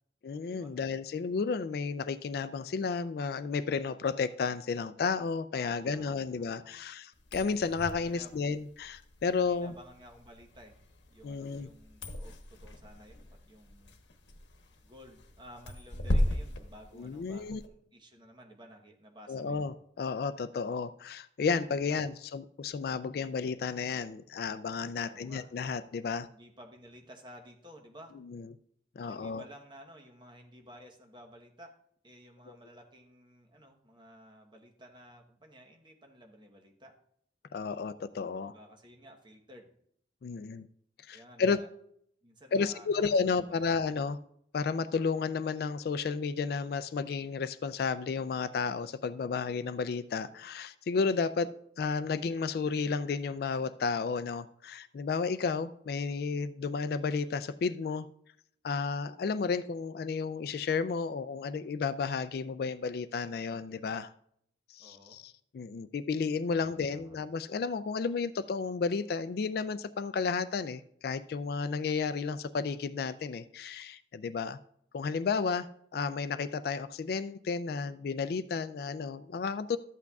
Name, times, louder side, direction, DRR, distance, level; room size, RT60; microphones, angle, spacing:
voice 1, 0.2-9.7 11.2-11.7 17.0-17.6 19.3-26.3 28.2-28.5 29.0-29.4 32.5-32.6 37.5-38.5 40.2-40.7 41.1-41.6 42.5-44.2 44.5-51.5 51.8-58.1 58.6-64.1 64.7-74.6 74.9-75.7 75.9-79.8, left 5 dB, 55° left, 14 dB, 0.3 m, -32 dB
voice 2, 5.6-6.8 8.0-8.3 9.4-10.8 11.1-13.9 14.8-19.7 21.9-22.0 25.0-25.4 26.3-28.1 29.0-31.7 32.0-36.9 38.5-39.7 41.1-41.7 42.2-43.7 64.8-65.2 66.5-67.2, equal, 25° right, 2 dB, 1.0 m, -54 dB
sound 1, 7.2-17.7, left 1 dB, 85° left, 1.0 m, -37 dB
13.0 x 8.3 x 2.3 m, 0.69 s
head